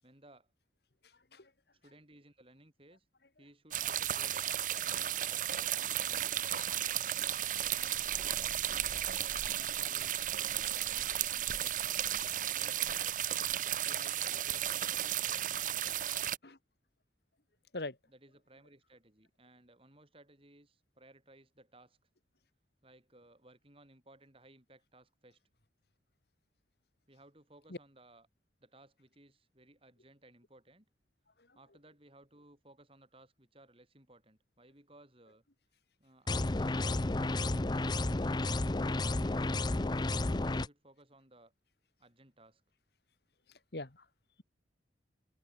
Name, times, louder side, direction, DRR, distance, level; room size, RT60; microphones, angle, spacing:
voice 1, 0.0-0.5 1.7-3.1 3.4-4.6 5.2-8.9 9.4-16.1 18.1-22.0 22.8-25.4 27.1-28.3 28.6-30.9 31.5-35.4 36.0-40.0 40.3-41.5 42.0-42.6, right 1 dB, 30° right, 6.4 m, -61 dB
voice 2, 1.0-1.5 16.4-16.6 17.7-18.0 27.7-27.8 31.4-31.6 43.5-44.1, left 2 dB, 60° left, 1.9 m, -43 dB
sound 1, 3.7-16.4, right 11 dB, 45° right, 0.8 m, -34 dB
sound 2, 36.3-40.7, left 2 dB, 25° left, 0.6 m, -32 dB
open air
head